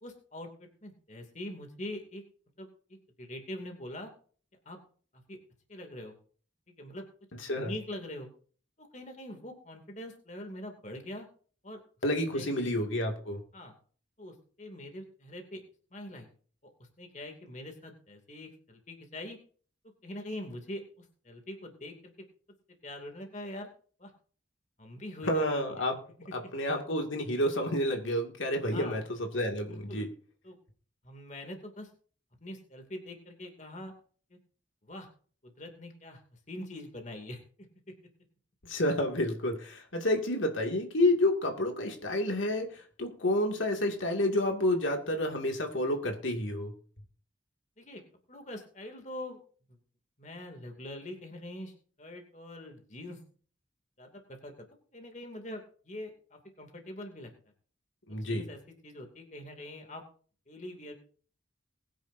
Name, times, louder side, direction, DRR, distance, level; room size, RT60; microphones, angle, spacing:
voice 1, 0.0-2.2 2.6-4.1 4.7-4.8 5.1-5.4 5.7-6.1 6.7-7.0 7.5-8.3 8.8-11.3 11.6-11.8 12.3-12.7 13.5-13.7 14.2-15.6 15.9-16.3 16.8-19.4 20.0-22.1 22.8-23.7 24.0-24.1 24.8-25.5 25.8-25.9 26.2-26.3 28.7-29.0 29.9-30.0 30.4-30.6 31.0-31.9 32.4-33.9 34.3-34.4 34.8-35.1 35.4-37.4 47.8-48.0 48.3-49.4 49.7-49.8 50.2-53.2 54.0-54.7 54.9-57.3 58.1-60.0 60.5-60.9, left 1 dB, 40° left, 4 dB, 2.6 m, -43 dB
voice 2, 12.0-13.4 25.3-26.0 26.3-29.0 29.3-30.1 38.6-46.7 58.1-58.5, left 1 dB, 80° left, 3 dB, 2.4 m, -29 dB
21.0 x 10.0 x 2.7 m, 0.43 s
head